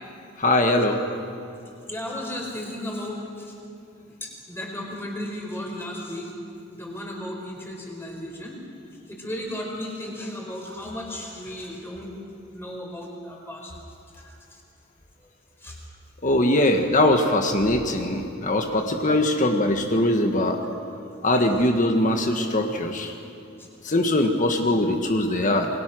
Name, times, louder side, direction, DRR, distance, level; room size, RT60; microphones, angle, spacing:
voice 1, 0.4-1.0 16.2-20.6 21.2-23.1 23.8-25.7, left 1 dB, 40° left, 4 dB, 1.6 m, -21 dB
voice 2, 1.9-3.5 4.2-6.3 6.7-8.6 9.1-12.1 12.5-13.7 14.1-14.3 15.6-15.8 20.6-20.7, left 1 dB, 15° left, 0 dB, 4.9 m, -35 dB
28.5 x 22.5 x 6.3 m, 2.7 s
head